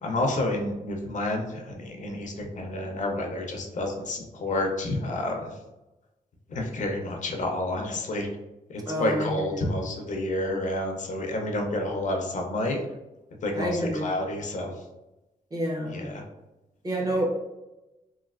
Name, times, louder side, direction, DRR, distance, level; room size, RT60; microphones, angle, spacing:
voice 1, 0.0-5.6 6.5-8.3 8.7-12.8 13.4-14.8 15.8-16.2, left 1 dB, 55° left, 2 dB, 0.5 m, -29 dB
voice 2, 8.9-9.7 13.5-14.1 15.5-16.0 16.8-17.3, right 1 dB, 25° right, 0 dB, 0.5 m, -28 dB
3.1 x 2.6 x 2.4 m, 0.99 s
wide cardioid pair, 165°, 15 cm